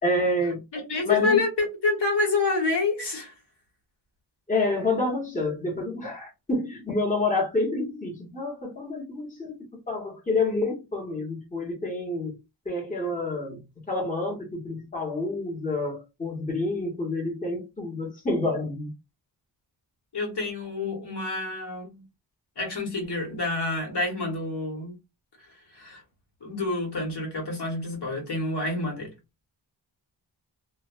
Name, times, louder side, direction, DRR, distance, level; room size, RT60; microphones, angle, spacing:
voice 1, 0.0-0.6 1.0-1.4 4.5-9.6 9.9-12.4 12.6-18.9, left 2 dB, 15° left, 1.0 m, -28 dB
voice 2, 0.7-3.4 20.1-22.0 22.6-25.0 25.4-26.0 26.4-29.1, left 3 dB, 60° left, 1.3 m, -28 dB
2.5 x 2.2 x 2.4 m
wide cardioid pair, 85°, 44 cm